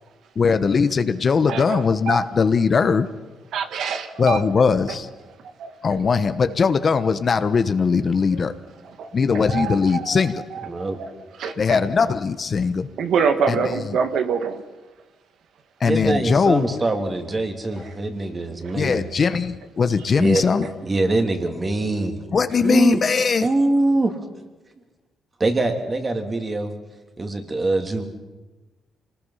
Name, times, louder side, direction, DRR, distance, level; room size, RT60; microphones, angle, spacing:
voice 1, 0.4-3.1 4.2-5.1 5.8-8.5 9.1-10.4 11.6-12.9 13.5-14.0 15.8-16.8 17.7-17.8 18.7-20.7 22.3-23.5, left 5 dB, 40° left, 11 dB, 1.1 m, -20 dB
voice 2, 1.5-2.2 3.5-4.4 4.9-5.0 5.6-6.0 8.3-8.4 9.0-10.2 10.5-11.1 11.4-11.8 13.0-14.6, right 6 dB, 70° right, 7 dB, 1.5 m, -26 dB
voice 3, 10.7-11.0 15.8-19.0 20.2-20.5 20.8-22.2 22.6-23.0 23.4-24.2 25.4-26.7 27.2-28.0, right 2 dB, 30° right, 5 dB, 2.8 m, -23 dB
26.5 x 19.5 x 5.7 m, 1.2 s
cardioid pair, 90°, 0 cm